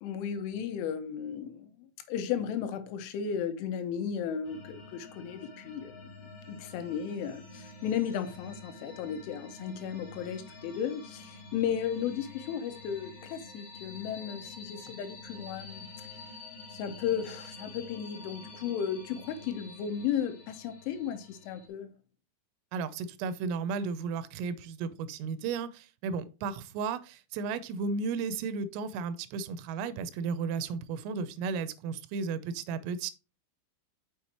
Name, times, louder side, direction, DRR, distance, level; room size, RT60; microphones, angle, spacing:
voice 1, 0.0-16.1 16.7-21.9, left 8 dB, 75° left, 3.3 m, -35 dB
sound 1, 4.4-21.7, left 2 dB, 55° left, 3.1 m, -48 dB
voice 2, 22.7-33.1, right 5 dB, 85° right, 3.3 m, -34 dB
7.1 x 6.2 x 2.9 m
omnidirectional pair, 5.8 m